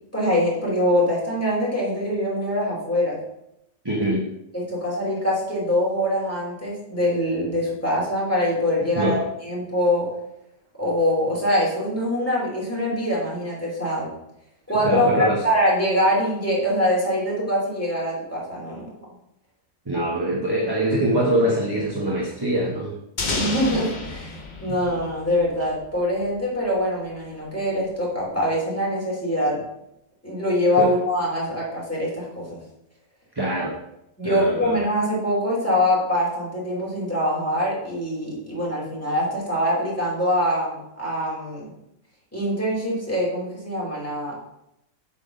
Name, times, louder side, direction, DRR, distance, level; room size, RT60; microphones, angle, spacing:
voice 1, 0.1-3.2 4.5-9.2 9.4-10.1 10.8-14.1 14.7-18.9 23.3-29.6 30.2-32.6 34.2-41.7 42.3-44.4, equal, 10° left, -6 dB, 3.0 m, -24 dB
voice 2, 3.8-4.2 8.9-9.2 14.8-15.4 19.9-22.9 30.8-30.9 33.3-33.7 34.2-34.8, right 1 dB, 20° right, -4 dB, 1.1 m, -23 dB
sound 1, 23.2-26.0, left 2 dB, 35° left, 1.1 m, -30 dB
7.8 x 4.0 x 6.5 m, 0.84 s
omnidirectional pair, 1.5 m